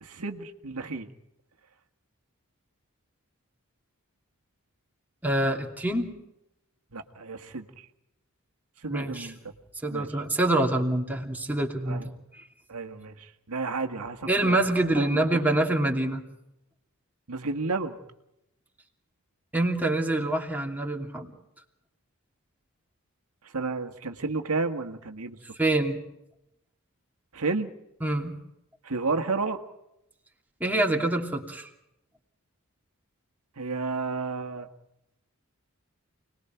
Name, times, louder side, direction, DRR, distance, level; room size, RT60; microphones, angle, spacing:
voice 1, 0.0-1.1 6.9-7.9 8.8-9.5 9.9-10.1 11.9-12.1 12.7-14.6 15.0-15.4 17.3-18.0 23.5-25.4 27.3-27.7 28.8-29.6 33.6-34.7, right 3 dB, 85° right, 6 dB, 1.8 m, -31 dB
voice 2, 5.2-6.1 8.9-9.3 9.8-12.1 14.3-16.2 19.5-21.3 25.6-26.0 28.0-28.4 30.6-31.7, right 1 dB, 10° right, 0 dB, 2.8 m, -26 dB
29.0 x 21.0 x 4.6 m, 0.84 s
head